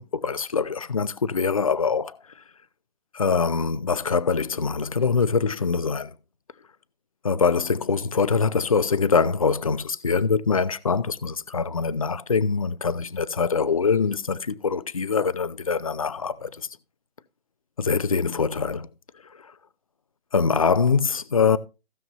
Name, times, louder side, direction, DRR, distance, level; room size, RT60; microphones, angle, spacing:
voice 1, 0.0-2.2 3.1-6.1 7.2-16.7 17.8-18.9 20.3-21.6, left 5 dB, 35° left, 0.5 m, -23 dB
16.0 x 7.0 x 3.0 m
hypercardioid pair, 170°, 30 cm